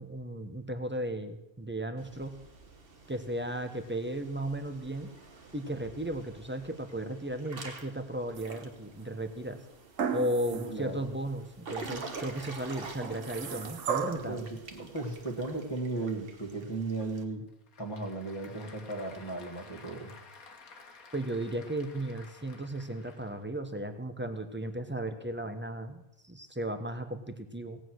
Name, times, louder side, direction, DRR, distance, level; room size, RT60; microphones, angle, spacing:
voice 1, 0.0-2.4 3.1-5.1 5.5-9.6 10.1-14.5 21.1-27.8, right 1 dB, 10° right, 8 dB, 0.9 m, -35 dB
Water / Splash splatter / Drip, 2.0-17.2, right 3 dB, 40° right, 1.5 m, -48 dB
sound 1, 8.3-9.0 10.0-10.8 11.3-11.4 13.0-14.4 15.5-15.6, right 7 dB, 65° right, 1.3 m, -35 dB
voice 2, 10.5-11.1 14.1-17.5 17.8-20.1, right 2 dB, 15° left, 2 dB, 2.1 m, -36 dB
Applause / Crowd, 17.3-23.5, left 4 dB, 80° left, 1.7 m, -53 dB
17.0 x 9.1 x 6.3 m, 0.87 s
omnidirectional pair, 1.5 m